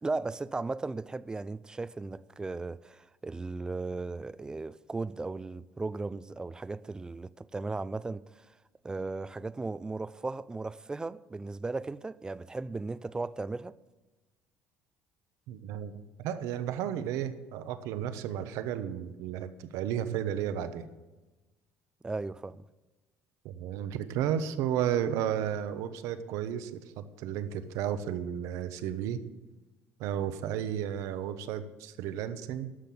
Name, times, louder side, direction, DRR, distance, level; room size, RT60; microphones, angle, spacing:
voice 1, 0.0-8.2 8.8-13.8 22.0-22.6, right 3 dB, 15° right, 0.4 m, -36 dB
voice 2, 15.5-20.9 23.4-29.2 30.0-32.7, right 10 dB, 80° right, 1.0 m, -33 dB
13.0 x 6.0 x 8.6 m
cardioid pair, 115°, 5 cm